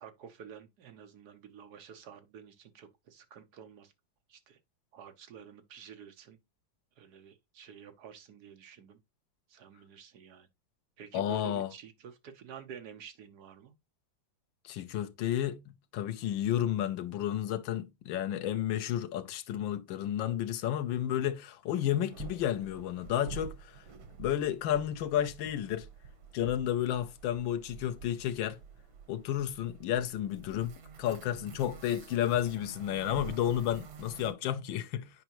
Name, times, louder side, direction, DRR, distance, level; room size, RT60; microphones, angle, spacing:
voice 1, 0.0-3.9 4.3-4.6 4.9-6.4 7.0-9.0 9.5-10.5 11.0-13.7, right 8 dB, 60° right, 1.4 m, -50 dB
voice 2, 11.1-11.7 14.6-23.8 24.2-25.9 26.3-28.6 29.1-35.1, left 11 dB, 80° left, 1.5 m, -32 dB
sound 1, 22.1-34.3, right 6 dB, 90° right, 2.1 m, -48 dB
9.2 x 4.9 x 2.9 m
omnidirectional pair, 2.1 m